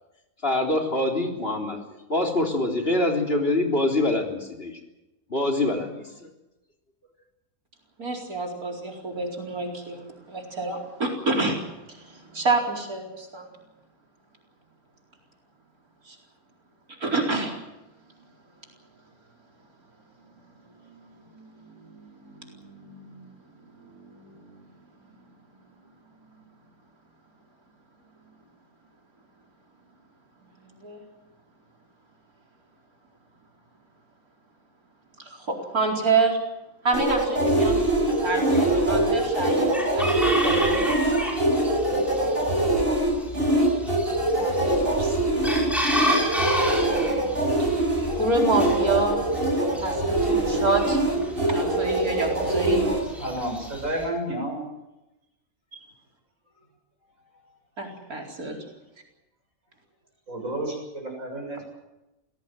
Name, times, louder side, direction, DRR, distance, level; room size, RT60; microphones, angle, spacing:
voice 1, 0.4-1.8 2.1-4.8 5.3-6.3, left 1 dB, 40° left, 5 dB, 3.9 m, -25 dB
voice 2, 8.0-11.6 11.9-13.5 16.1-16.2 16.9-17.5 20.6-23.3 23.6-24.6 26.4-26.5 30.8-31.0 35.2-36.4 36.8-41.0 44.4-45.6 46.7-46.8 47.6-47.8 48.1-49.2 49.8-51.0 51.5-52.9 55.7-55.8 57.8-58.5, right 3 dB, 85° right, 0 dB, 4.9 m, -29 dB
sound 1, 36.9-53.0, right 1 dB, 40° right, 6.6 m, -23 dB
Chicken rooster, 37.5-54.0, equal, ahead, 6.3 m, -33 dB
voice 3, 53.2-54.7 60.3-61.7, right 1 dB, 65° right, 1 dB, 8.0 m, -31 dB
26.0 x 17.5 x 7.7 m, 0.97 s
omnidirectional pair, 1.5 m